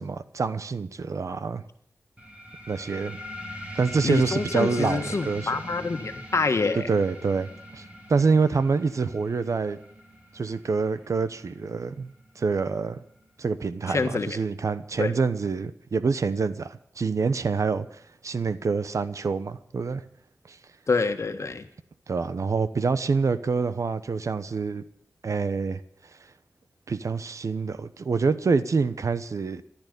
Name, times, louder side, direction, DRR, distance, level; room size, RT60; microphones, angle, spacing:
voice 1, 0.0-1.6 2.7-3.2 3.7-5.6 6.8-9.8 10.3-12.1 12.4-13.0 13.4-20.0 20.5-20.6 22.1-24.8 25.2-25.8 26.9-29.6, right 4 dB, 75° right, 13 dB, 0.9 m, -26 dB
sound 1, 2.2-13.2, equal, 25° right, 4.2 m, -41 dB
voice 2, 4.0-6.9 13.9-14.4 15.0-15.1 20.9-21.7, left 4 dB, 65° left, 7 dB, 1.5 m, -26 dB
14.5 x 12.0 x 6.7 m, 0.68 s
wide cardioid pair, 60°, 5 cm